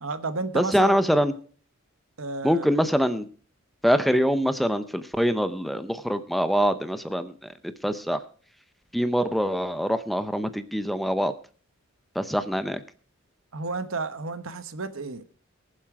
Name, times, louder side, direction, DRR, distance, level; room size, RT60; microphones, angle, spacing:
voice 1, 0.0-1.0 2.2-2.8 13.5-15.2, right 3 dB, 70° right, 1.0 m, -32 dB
voice 2, 0.5-1.3 2.4-3.3 3.8-7.3 7.8-8.2 8.9-11.3 12.2-12.8, equal, ahead, 0.5 m, -24 dB
20.0 x 7.4 x 4.7 m
head